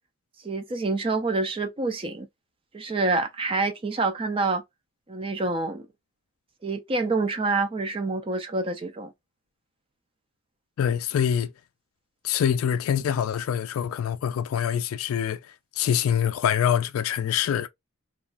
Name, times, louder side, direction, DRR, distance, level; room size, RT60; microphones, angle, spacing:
voice 1, 0.4-2.3 2.7-4.6 5.1-5.9 6.6-9.1, right 3 dB, 25° right, 0.3 m, -27 dB
voice 2, 10.8-11.5 12.2-15.4 15.8-17.7, left 9 dB, 85° left, 0.3 m, -25 dB
2.9 x 2.3 x 2.3 m
head